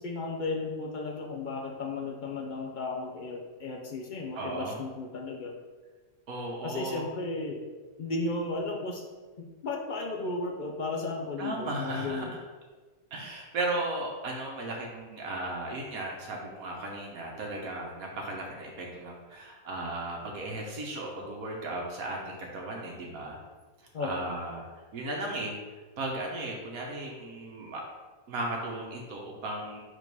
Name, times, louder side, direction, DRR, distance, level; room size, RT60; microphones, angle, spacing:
voice 1, 0.0-5.5 6.6-7.6 8.0-9.0 9.6-12.3 23.9-24.2, left 3 dB, 65° left, 1 dB, 0.4 m, -34 dB
voice 2, 4.3-4.8 6.3-7.1 11.4-12.4 13.1-23.4 24.0-24.7 24.9-25.6 26.0-27.8 28.3-29.8, right 2 dB, 70° right, -1 dB, 1.3 m, -36 dB
4.9 x 3.7 x 5.3 m, 1.4 s
omnidirectional pair, 1.6 m